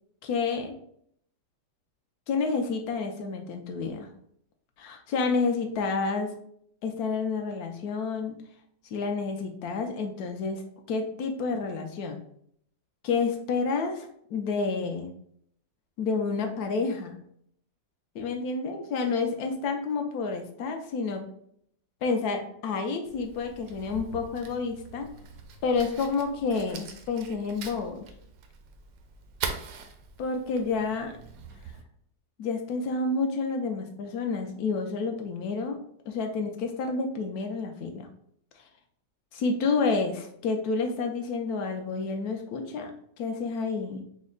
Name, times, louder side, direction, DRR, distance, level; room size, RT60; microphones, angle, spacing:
voice 1, 0.2-0.7 2.3-4.1 4.8-6.3 6.8-8.4 8.9-10.6 10.9-12.2 13.0-15.1 16.0-17.2 18.1-21.2 22.0-25.1 25.6-28.1 30.2-31.1 32.4-35.8 36.1-38.1 39.3-42.9 43.2-44.0, left 4 dB, 70° left, 4 dB, 0.9 m, -29 dB
Fire, 23.0-31.8, right 6 dB, 75° right, 0.8 m, -42 dB
4.2 x 2.1 x 3.6 m, 0.67 s
omnidirectional pair, 2.0 m